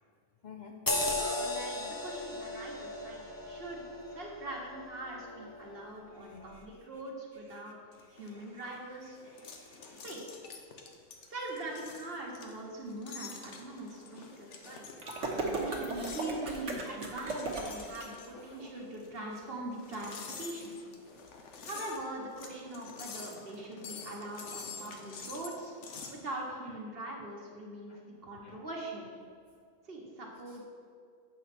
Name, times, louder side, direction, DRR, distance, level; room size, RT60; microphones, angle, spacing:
voice 1, 0.4-0.8 1.2-1.5 6.2-6.9 7.3-7.6 8.0-8.6 9.2-10.0 15.0-15.4 25.9-26.1 27.9-28.0 28.4-28.6 30.5-30.6, left 4 dB, 85° left, 3 dB, 0.4 m, -54 dB
sound 1, 0.9-5.8 6.2-6.4, left 2 dB, 20° left, 0.7 m, -36 dB
voice 2, 1.2-3.8 4.1-7.8 8.1-9.2 10.0-10.2 11.3-20.7 21.6-25.7 26.1-27.9 28.2-29.0 29.8-30.7, right 2 dB, 50° right, -2 dB, 1.5 m, -42 dB
sound 2, 7.9-26.2, left 5 dB, 65° left, 1.1 m, -48 dB
sound 3, 15.0-18.1, right 3 dB, 65° right, 1.4 m, -35 dB
8.4 x 5.8 x 4.2 m, 2.2 s
omnidirectional pair, 1.3 m